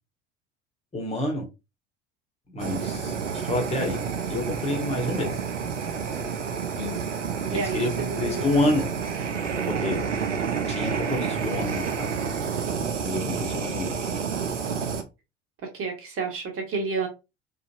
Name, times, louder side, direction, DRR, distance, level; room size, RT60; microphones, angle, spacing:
voice 1, 0.9-1.4 2.5-3.1 3.5-4.0 4.3-5.3 7.5-7.9 8.2-8.9 9.8-10.0 10.7-12.1 13.0-14.1, left 1 dB, 15° left, 1.3 m, -28 dB
Fire, 2.6-15.0, right 6 dB, 85° right, 0.5 m, -29 dB
voice 2, 2.7-3.3 6.7-7.1 7.4-8.7 13.3-13.9 15.6-17.1, right 4 dB, 40° right, 1.5 m, -32 dB
3.9 x 2.5 x 2.5 m
figure-of-eight pair, 65°, 35 cm